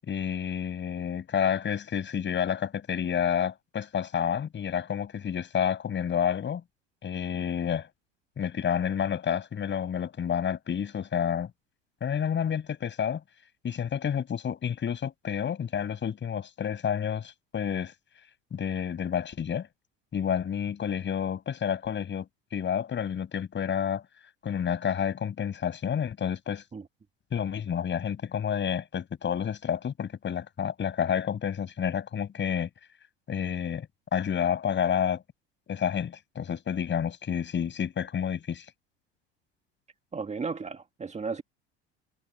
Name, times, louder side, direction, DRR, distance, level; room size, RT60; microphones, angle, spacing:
voice 1, 0.0-6.6 7.0-7.9 8.4-11.5 12.0-13.2 13.6-17.9 18.5-19.7 20.1-22.3 22.5-24.0 24.4-26.6 27.3-32.7 33.3-35.2 35.7-38.6, left 8 dB, 35° left, 7.9 m, -29 dB
voice 2, 40.1-41.4, right 4 dB, 20° right, 2.0 m, -34 dB
hypercardioid pair, 85°, 32 cm